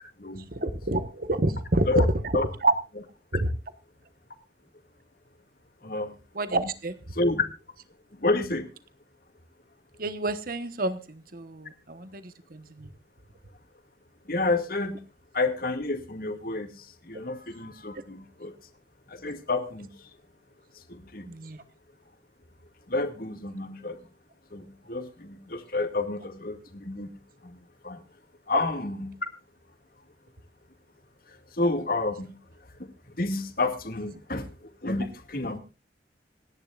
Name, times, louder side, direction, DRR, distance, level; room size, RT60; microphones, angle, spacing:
voice 1, 0.5-2.1 2.6-2.7 3.3-3.5 6.3-6.9 10.0-12.9 21.2-21.6, right 2 dB, 55° right, 11 dB, 1.1 m, -28 dB
voice 2, 8.2-8.7 14.3-15.0 15.3-16.7 17.1-18.5 19.1-19.9 21.1-21.3 22.9-24.0 24.5-25.1 25.5-26.6 26.8-27.1 27.8-28.0 28.5-29.1 31.6-32.3 33.2-34.5 34.8-35.6, left 2 dB, 55° left, 7 dB, 2.1 m, -29 dB
26.5 x 10.5 x 2.4 m, 0.31 s
head